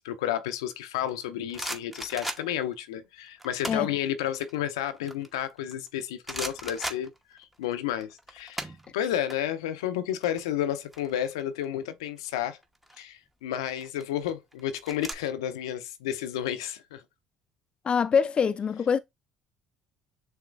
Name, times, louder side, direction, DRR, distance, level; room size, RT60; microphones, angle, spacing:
voice 1, 0.0-12.6 13.0-17.0, left 11 dB, 85° left, 0.6 m, -31 dB
sound 1, 1.1-2.7 3.4-3.9 4.3-5.9 6.2-7.6 7.9-9.4 9.6-9.8 10.1-11.6 12.6-13.0 13.7-15.1, right 1 dB, 5° right, 1.0 m, -38 dB
voice 2, 17.8-19.0, left 6 dB, 40° left, 0.4 m, -24 dB
6.8 x 2.9 x 2.5 m
hypercardioid pair, 65°, 3 cm